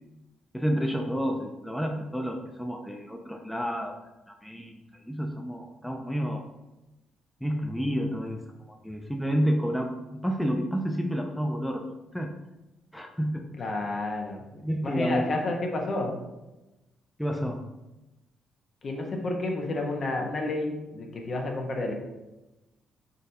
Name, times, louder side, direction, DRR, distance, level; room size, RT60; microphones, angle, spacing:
voice 1, 0.5-3.9 4.3-4.7 5.1-6.4 7.4-8.4 8.7-9.9 10.2-12.3 12.9-13.7 14.6-15.3 17.2-17.6, equal, 5° left, 2 dB, 0.5 m, -30 dB
voice 2, 13.6-14.4 14.8-16.2 18.8-21.9, left 2 dB, 50° left, 1 dB, 0.9 m, -30 dB
4.0 x 4.0 x 2.7 m, 1.0 s
hypercardioid pair, 50°, 0 cm